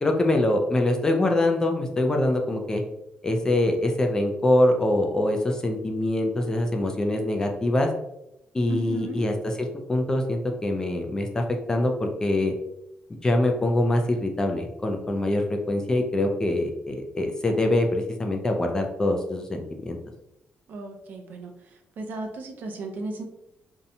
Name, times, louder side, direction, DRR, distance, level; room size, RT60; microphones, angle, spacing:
voice 1, 0.0-2.8 3.2-7.9 8.5-12.5 13.2-20.0, left 1 dB, 20° left, 3 dB, 0.3 m, -24 dB
voice 2, 8.7-9.2 20.7-21.5 22.0-23.2, right 3 dB, 60° right, 3 dB, 0.5 m, -35 dB
2.6 x 2.1 x 2.6 m, 0.85 s
cardioid pair, 135°, 4 cm